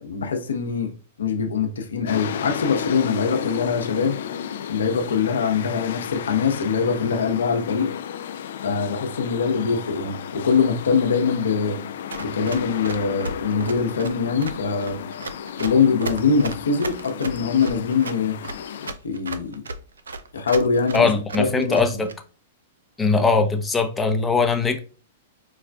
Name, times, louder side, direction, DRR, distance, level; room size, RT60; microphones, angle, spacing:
voice 1, 0.0-0.9 1.2-4.2 4.7-7.9 8.6-11.8 12.2-15.0 15.6-18.4 19.0-19.6 20.3-21.1 21.4-21.8, left 5 dB, 85° left, 0.8 m, -23 dB
sound 1, 2.1-18.9, left 9 dB, 70° left, 0.3 m, -33 dB
Run, 12.1-22.1, right 3 dB, 90° right, 0.4 m, -34 dB
voice 2, 20.9-22.1 23.0-24.8, left 4 dB, 10° left, 0.6 m, -20 dB
4.8 x 2.4 x 2.3 m
hypercardioid pair, 120°, 0 cm